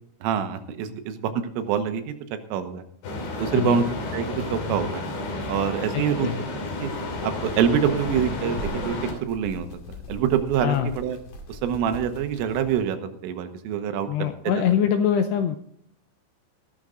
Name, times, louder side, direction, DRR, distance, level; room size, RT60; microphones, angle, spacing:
voice 1, 0.2-2.1 2.5-2.8 3.4-5.0 5.5-6.3 6.8-6.9 7.2-9.0 9.2-9.7 10.1-11.2 11.5-14.6, right 8 dB, 85° right, 8 dB, 3.7 m, -26 dB
sound 1, 3.0-9.1, left 2 dB, 65° left, 5.1 m, -31 dB
voice 2, 3.5-3.8 6.2-6.4 10.6-10.9 14.1-15.6, left 9 dB, 80° left, 7 dB, 2.4 m, -23 dB
sound 2, 6.9-12.8, left 2 dB, 50° left, 3.2 m, -41 dB
14.5 x 13.0 x 3.8 m, 0.68 s
omnidirectional pair, 5.6 m